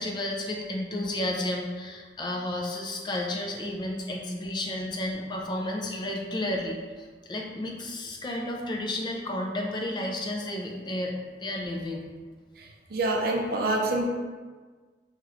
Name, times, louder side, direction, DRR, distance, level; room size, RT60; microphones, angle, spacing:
voice 1, 0.0-12.1, left 1 dB, 25° left, 0 dB, 0.3 m, -32 dB
voice 2, 12.6-14.0, right 2 dB, 55° right, 1 dB, 0.4 m, -27 dB
3.1 x 2.9 x 2.4 m, 1.4 s
head